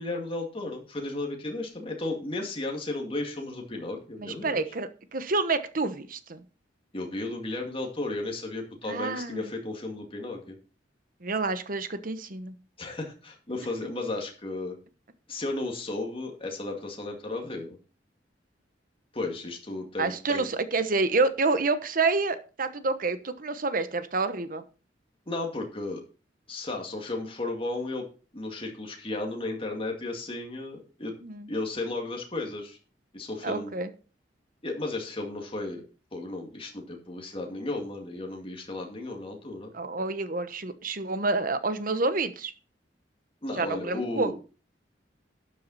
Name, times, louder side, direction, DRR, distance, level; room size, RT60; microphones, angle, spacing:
voice 1, 0.0-4.6 6.9-10.6 12.8-14.8 15.3-17.8 19.1-20.5 25.3-26.0 26.5-28.1 28.3-31.1 31.5-32.8 33.1-33.7 34.6-35.8 36.1-39.7 43.4-44.3, left 2 dB, 30° left, 2 dB, 2.2 m, -34 dB
voice 2, 4.2-6.4 8.9-9.5 11.2-12.5 20.0-24.6 31.2-31.5 33.4-33.9 39.7-42.5 43.6-44.3, right 3 dB, 50° right, 11 dB, 1.1 m, -28 dB
12.5 x 7.6 x 4.2 m, 0.35 s
head